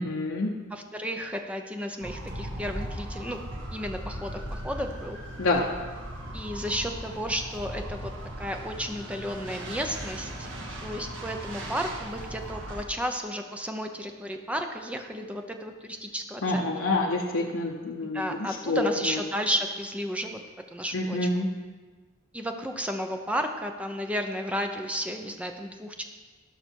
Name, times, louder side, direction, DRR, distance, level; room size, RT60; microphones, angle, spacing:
voice 1, 0.0-0.6 5.4-5.6 16.4-18.9 20.9-21.5, left 2 dB, 70° left, -1 dB, 0.9 m, -27 dB
voice 2, 0.7-3.4 3.7-5.2 6.3-8.1 8.4-10.5 10.8-16.9 18.1-20.4 20.7-21.3 22.3-26.0, equal, 5° right, 4 dB, 0.7 m, -33 dB
sound 1, 2.0-12.8, right 1 dB, 65° right, 1.5 m, -38 dB
17.0 x 5.9 x 4.6 m, 1.4 s
head